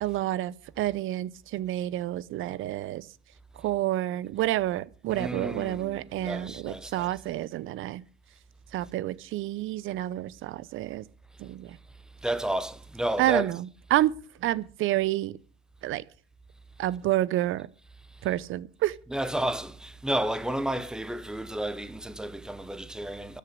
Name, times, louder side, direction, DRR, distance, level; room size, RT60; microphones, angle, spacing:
voice 1, 0.0-3.1 3.6-8.0 8.7-11.0 11.4-11.8 13.2-14.1 14.4-15.3 15.8-16.0 16.8-17.7 18.2-18.9, right 14 dB, 35° right, 0.7 m, -29 dB
voice 2, 5.1-7.1 12.2-13.5 19.1-23.4, right 1 dB, ahead, 1.0 m, -31 dB
13.5 x 6.8 x 7.9 m
hypercardioid pair, 90°, 35 cm